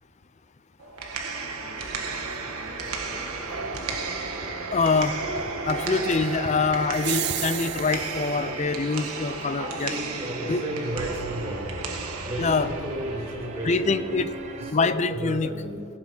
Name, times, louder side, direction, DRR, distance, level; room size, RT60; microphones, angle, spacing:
sound 1, 0.8-14.8, right 4 dB, 85° right, 1.4 m, -34 dB
sound 2, 1.0-14.7, right 2 dB, 30° right, 1.1 m, -40 dB
voice 1, 4.7-5.2 5.6-9.9 10.5-10.6 12.4-12.7 13.6-14.3 14.7-15.5, left 4 dB, 30° left, 12 dB, 0.5 m, -24 dB
sound 3, 6.9-8.3, right 16 dB, 50° right, 0.3 m, -31 dB
voice 2, 9.6-11.8 12.2-14.2 14.6-15.8, equal, 10° right, -4 dB, 3.1 m, -33 dB
18.5 x 6.5 x 5.7 m, 2.3 s
head